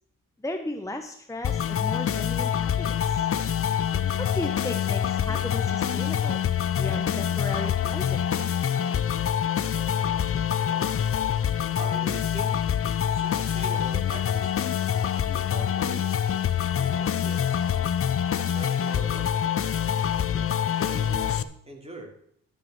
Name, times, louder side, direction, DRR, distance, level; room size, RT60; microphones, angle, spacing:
voice 1, 0.4-3.3 4.2-6.4 6.8-8.2, left 1 dB, 10° left, 5 dB, 0.9 m, -35 dB
sound 1, 1.4-21.4, left 9 dB, 40° left, 0.6 m, -26 dB
voice 2, 10.5-10.9 11.7-12.6 13.0-16.2 16.7-17.6 18.3-19.3 20.3-22.1, right 2 dB, 15° right, 1 dB, 3.2 m, -43 dB
13.0 x 5.6 x 6.0 m, 0.67 s
cardioid pair, 70°, 35 cm